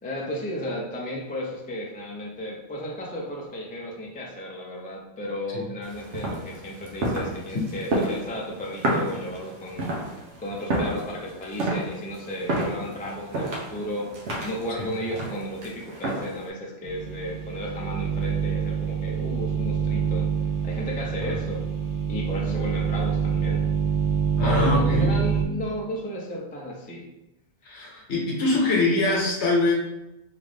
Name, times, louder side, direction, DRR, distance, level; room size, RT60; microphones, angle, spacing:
voice 1, 0.0-9.9 10.4-20.3 20.6-21.7 22.1-23.7 24.4-27.1, equal, 15° left, -2 dB, 0.3 m, -34 dB
sound 1, 5.8-16.5, right 1 dB, 90° right, 1.1 m, -30 dB
sound 2, 16.8-25.4, right 7 dB, 35° right, 0.6 m, -26 dB
voice 2, 24.4-25.1 27.6-29.7, left 3 dB, 70° left, -2 dB, 1.2 m, -23 dB
3.5 x 2.5 x 3.3 m, 0.92 s
omnidirectional pair, 1.2 m